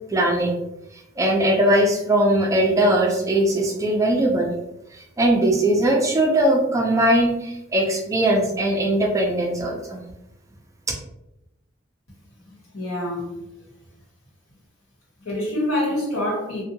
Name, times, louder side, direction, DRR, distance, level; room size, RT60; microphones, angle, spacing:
voice 1, 0.1-0.6 1.2-4.5 4.9-10.0, right 1 dB, 15° right, 0 dB, 0.4 m, -20 dB
voice 2, 12.7-13.3 15.2-16.6, left 1 dB, 90° left, -4 dB, 1.2 m, -25 dB
2.6 x 2.1 x 2.7 m, 0.89 s
head